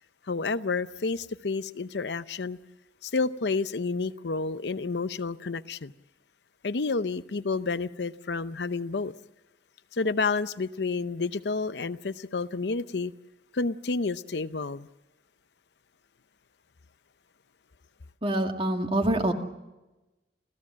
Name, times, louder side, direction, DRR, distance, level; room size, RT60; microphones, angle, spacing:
voice 1, 0.3-2.6 3.0-5.9 6.6-9.1 9.9-13.1 13.5-14.9, left 4 dB, 70° left, 0.7 m, -30 dB
voice 2, 18.2-19.3, right 1 dB, 35° right, 2.2 m, -25 dB
30.0 x 15.5 x 7.5 m
head